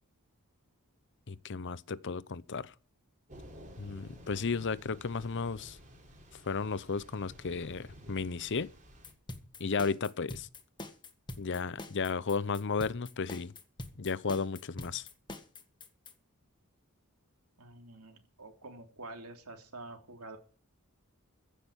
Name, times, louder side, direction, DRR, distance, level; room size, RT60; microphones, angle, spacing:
voice 1, 1.3-2.7 3.8-5.8 6.4-8.7 9.6-10.5 11.4-13.5 14.0-15.1, left 4 dB, 55° left, 0.7 m, -34 dB
Thunder / Rain, 3.3-9.1, equal, 35° right, 4.6 m, -52 dB
sound 1, 9.0-16.1, left 2 dB, 20° left, 1.7 m, -44 dB
voice 2, 17.6-20.4, right 2 dB, 85° right, 3.3 m, -47 dB
15.5 x 6.6 x 8.3 m
head